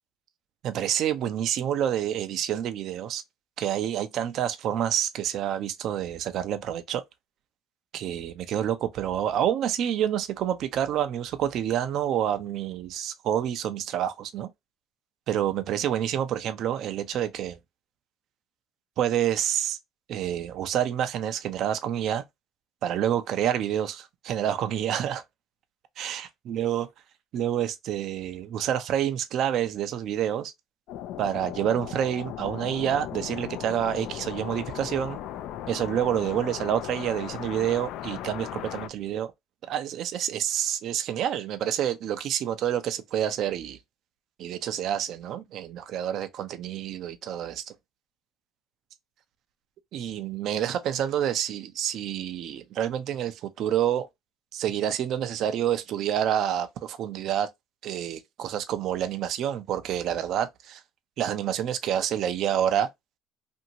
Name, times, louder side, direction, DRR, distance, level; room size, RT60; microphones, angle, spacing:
voice 1, 0.6-3.2 3.6-7.0 7.9-14.5 15.3-17.6 19.0-19.8 20.1-22.2 22.8-25.2 26.0-26.2 26.5-26.9 27.3-30.5 31.2-35.2 35.7-39.3 39.7-43.8 44.4-47.6 49.9-54.1 54.5-57.5 57.8-60.8 61.2-62.9, right 10 dB, 60° right, 0.5 m, -28 dB
sound 1, 30.9-38.9, left 11 dB, 70° left, 0.4 m, -37 dB
2.6 x 2.5 x 2.8 m
supercardioid pair, 95°, 0 cm